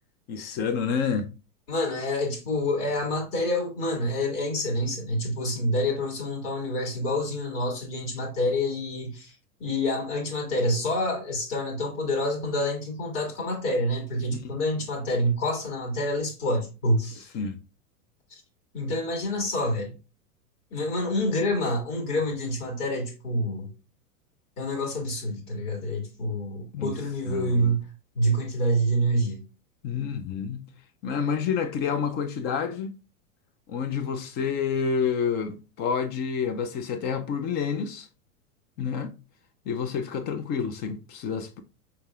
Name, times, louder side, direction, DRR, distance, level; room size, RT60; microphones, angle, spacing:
voice 1, 0.3-1.3 14.3-14.5 17.3-17.6 26.7-27.0 27.2-27.8 29.8-30.7 31.0-33.0 33.7-38.1 38.8-39.1 39.7-41.6, left 6 dB, 25° left, 0.4 m, -29 dB
voice 2, 1.7-9.3 9.6-17.3 18.7-19.9 20.7-23.7 24.6-27.9 28.1-29.4, equal, 75° left, 2.4 m, -27 dB
5.3 x 3.3 x 2.3 m
hypercardioid pair, 115°, 46 cm